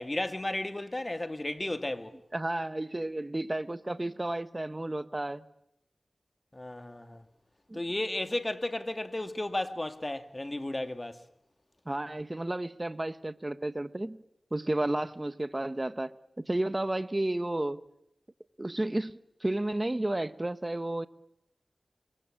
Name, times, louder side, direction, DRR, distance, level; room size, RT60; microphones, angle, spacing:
voice 1, 0.0-2.1 6.5-7.2 7.7-11.2, left 1 dB, 25° left, 2.4 m, -34 dB
voice 2, 2.3-5.5 7.7-7.8 11.9-14.2 14.5-17.8 18.6-21.1, right 1 dB, 25° right, 1.1 m, -32 dB
26.0 x 23.0 x 8.7 m
wide cardioid pair, 60°, 0 cm